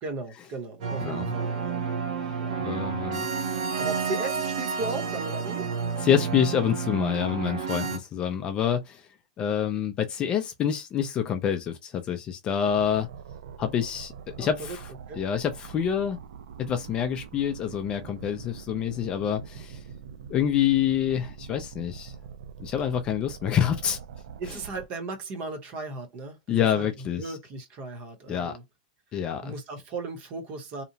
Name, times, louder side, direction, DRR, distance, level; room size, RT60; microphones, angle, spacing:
voice 1, 0.0-1.8 2.4-2.6 3.8-5.7 14.4-14.8 15.1-15.2 24.4-26.9 27.2-28.6 29.4-30.8, right 3 dB, 35° right, 0.8 m, -36 dB
sound 1, 0.8-8.0, right 6 dB, 65° right, 0.9 m, -30 dB
voice 2, 2.3-3.3 6.0-9.1 9.4-13.1 13.6-14.9 15.1-16.2 16.6-19.8 20.3-22.1 22.6-24.0 26.5-27.4 28.3-28.6 29.1-29.5, left 9 dB, 25° left, 0.4 m, -27 dB
sound 2, 12.7-24.9, right 7 dB, 80° right, 0.4 m, -44 dB
2.8 x 2.0 x 2.7 m
supercardioid pair, 155°, 4 cm